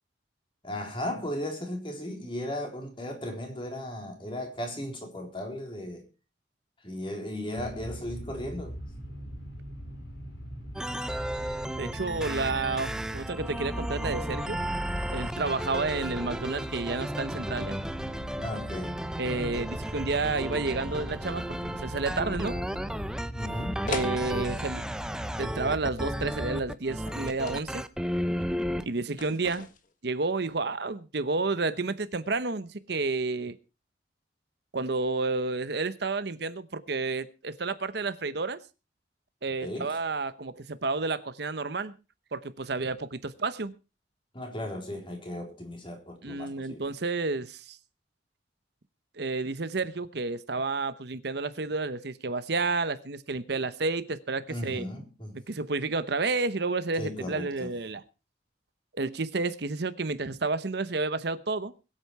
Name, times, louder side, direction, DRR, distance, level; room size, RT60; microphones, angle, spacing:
voice 1, 0.6-6.1 6.8-8.8 18.4-19.0 23.4-23.9 39.6-39.9 44.3-46.9 54.5-55.4 57.0-57.7, left 1 dB, 30° left, 3.8 m, -36 dB
sound 1, 7.6-26.7, equal, 75° left, 4.5 m, -41 dB
sound 2, 10.8-28.9, equal, 5° right, 0.7 m, -34 dB
voice 2, 11.8-14.6 15.1-17.8 19.2-22.6 23.9-24.8 25.4-27.8 28.9-29.7 30.0-33.5 34.7-38.6 39.4-41.9 42.3-43.7 46.2-47.8 49.2-54.8 55.5-58.0 59.0-61.7, right 3 dB, 60° right, 0.9 m, -30 dB
sound 3, 23.9-24.2 27.1-27.7 29.2-29.9, left 3 dB, 45° left, 1.6 m, -37 dB
21.0 x 8.8 x 4.7 m
head